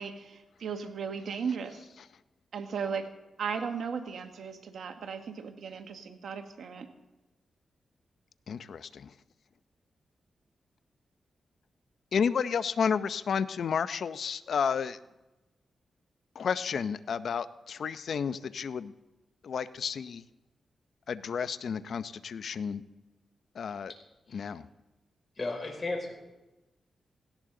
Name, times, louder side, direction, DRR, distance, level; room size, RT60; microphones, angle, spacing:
voice 1, 0.0-1.8 2.5-3.1 3.4-6.9, right 6 dB, 75° right, 6 dB, 1.4 m, -36 dB
voice 2, 8.5-9.1 12.1-15.0 16.3-18.9 19.4-20.2 21.1-22.8 23.5-23.9 24.3-24.7, left 6 dB, 70° left, 14 dB, 0.6 m, -31 dB
voice 3, 25.4-26.1, left 2 dB, 40° left, 1 dB, 5.5 m, -35 dB
17.5 x 17.0 x 3.9 m, 1.0 s
cardioid pair, 55°, 0 cm